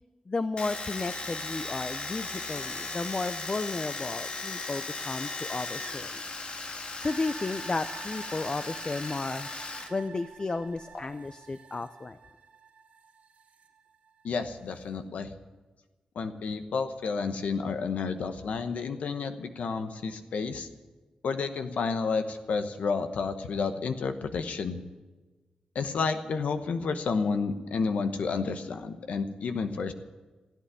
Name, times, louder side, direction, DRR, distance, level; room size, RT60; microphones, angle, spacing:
voice 1, 0.3-6.2 7.0-9.5 9.9-12.2, left 3 dB, 35° left, 11 dB, 0.6 m, -33 dB
Domestic sounds home sounds, 0.6-9.9 10.2-11.0, left 3 dB, 55° left, 1.7 m, -37 dB
sound 1, 7.0-14.3 14.7-14.8, right 6 dB, 80° right, 3.3 m, -48 dB
voice 2, 14.2-15.3 16.1-20.7 21.2-24.8 25.7-29.9, left 5 dB, 85° left, 8 dB, 1.0 m, -30 dB
16.5 x 8.5 x 9.7 m, 1.2 s
cardioid pair, 65°, 2 cm